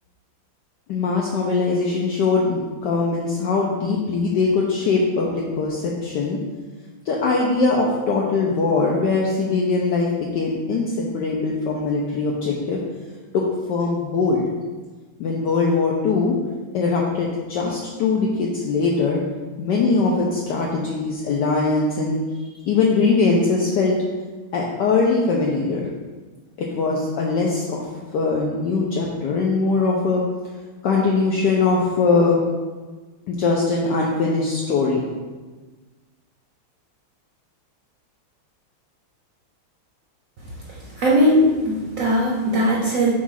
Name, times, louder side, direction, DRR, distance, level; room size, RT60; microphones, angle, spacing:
voice 1, 0.9-6.4 7.1-10.1 10.3-12.8 13.3-13.4 13.7-14.4 15.2-16.3 16.7-19.2 19.6-22.2 22.6-23.9 24.5-25.8 26.6-27.9 28.1-30.2 30.8-32.4 33.3-35.0, left 4 dB, 70° left, -3 dB, 1.1 m, -21 dB
voice 2, 41.0-43.1, equal, 55° right, -3 dB, 1.0 m, -19 dB
7.2 x 2.4 x 5.6 m, 1.3 s
omnidirectional pair, 2.2 m